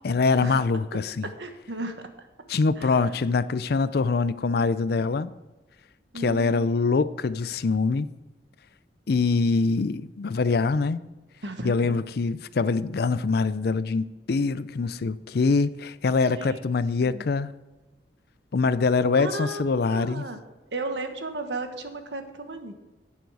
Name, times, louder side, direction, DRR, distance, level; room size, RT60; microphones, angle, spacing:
voice 1, 0.0-1.3 2.5-5.4 6.1-8.1 9.1-11.0 11.6-17.5 18.5-20.3, left 4 dB, 60° left, 0.5 m, -24 dB
voice 2, 1.4-1.9 2.8-3.2 6.1-6.7 11.4-11.9 16.3-16.6 17.0-17.2 19.2-20.4 20.7-22.7, right 2 dB, 80° right, 1.3 m, -34 dB
10.5 x 9.6 x 4.8 m
head